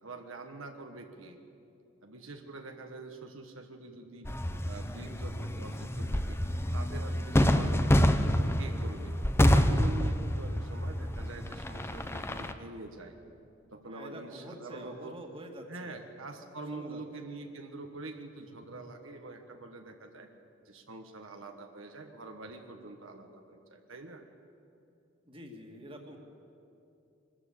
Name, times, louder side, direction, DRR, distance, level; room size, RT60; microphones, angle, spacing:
voice 1, 0.0-1.4 2.0-4.3 4.6-6.4 6.7-9.2 9.5-13.2 13.7-15.1 15.7-20.3 20.6-24.2, right 2 dB, 75° right, 4 dB, 1.4 m, -45 dB
sound 1, 4.2-12.5, equal, 15° left, 0.7 m, -28 dB
voice 2, 13.9-16.1 16.7-17.0 25.3-26.2, equal, 25° right, 2 dB, 2.0 m, -46 dB
23.0 x 13.5 x 8.4 m, 2.7 s
head